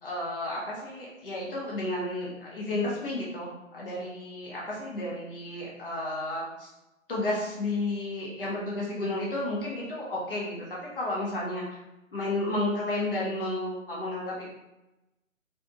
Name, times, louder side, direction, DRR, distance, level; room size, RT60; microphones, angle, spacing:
voice 1, 0.0-6.7 7.1-11.8 12.1-14.5, left 2 dB, 40° left, -5 dB, 1.2 m, -32 dB
4.1 x 3.4 x 2.4 m, 0.96 s
hypercardioid pair, 170°, 41 cm